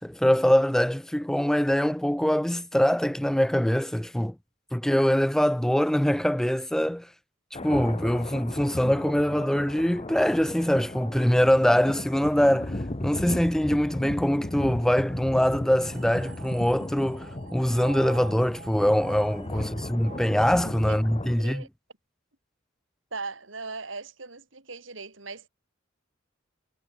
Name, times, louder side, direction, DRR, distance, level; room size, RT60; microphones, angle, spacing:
voice 1, 0.0-4.3 4.7-7.1 7.5-21.7, equal, 5° left, 0.4 m, -23 dB
sound 1, 7.5-21.3, left 1 dB, 30° left, 1.2 m, -36 dB
sound 2, 15.8-21.2, right 5 dB, 45° right, 1.3 m, -46 dB
voice 2, 19.5-19.9 20.9-21.0 21.4-21.7 23.1-25.5, right 4 dB, 70° right, 4.1 m, -39 dB
head